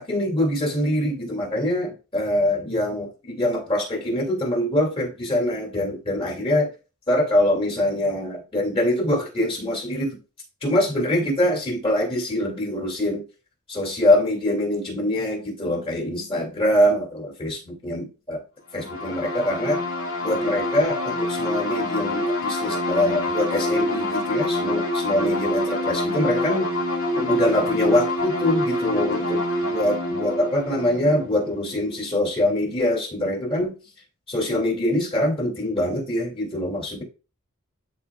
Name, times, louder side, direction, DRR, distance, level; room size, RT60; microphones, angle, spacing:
voice 1, 0.0-6.7 7.1-10.1 10.6-13.2 13.7-18.4 18.7-19.8 20.2-26.7 27.1-33.7 34.3-37.0, left 1 dB, 25° left, 2.6 m, -24 dB
sound 1, 18.8-32.3, left 1 dB, 70° left, 2.1 m, -26 dB
12.0 x 4.2 x 2.4 m
head